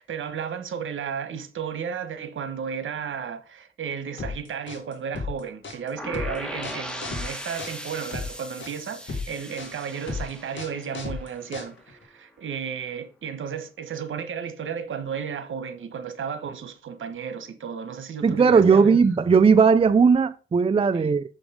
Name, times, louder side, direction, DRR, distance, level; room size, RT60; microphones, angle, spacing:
voice 1, 0.0-19.0 20.9-21.1, right 7 dB, 70° right, 1.3 m, -33 dB
sound 1, 4.2-12.0, left 4 dB, 65° left, 1.9 m, -35 dB
sound 2, 6.0-11.8, equal, 5° left, 1.6 m, -38 dB
voice 2, 18.2-21.2, right 5 dB, 25° right, 0.4 m, -17 dB
7.1 x 5.3 x 5.0 m
cardioid pair, 75°, 21 cm